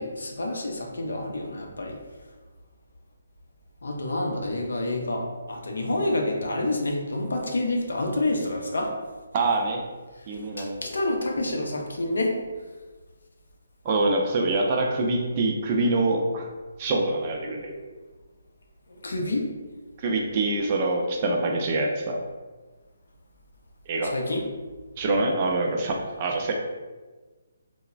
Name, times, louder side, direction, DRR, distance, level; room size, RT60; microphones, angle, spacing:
voice 1, 0.0-2.0 3.8-8.9 10.6-12.4 18.9-19.5 24.0-24.4, left 2 dB, 80° left, 1 dB, 0.5 m, -28 dB
voice 2, 9.3-9.8 10.3-10.8 13.8-16.5 16.8-17.7 20.0-22.2 23.9-24.1 25.0-26.5, right 2 dB, 35° right, 1 dB, 0.4 m, -25 dB
3.0 x 2.0 x 2.4 m, 1.3 s
figure-of-eight pair, 150°, 0 cm